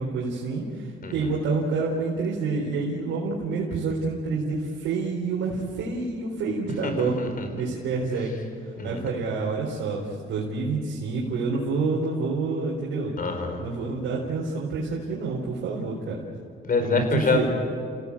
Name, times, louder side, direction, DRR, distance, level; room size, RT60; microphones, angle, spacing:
voice 1, 0.0-7.1 7.5-8.3 8.8-13.1 13.6-16.2 16.8-17.5, right 4 dB, 85° right, -3 dB, 4.1 m, -28 dB
voice 2, 6.8-7.5 8.8-9.0 13.2-13.6 16.6-17.5, left 4 dB, 45° left, 6 dB, 4.7 m, -26 dB
29.5 x 17.0 x 8.6 m, 2.2 s
cardioid pair, 90°, 20 cm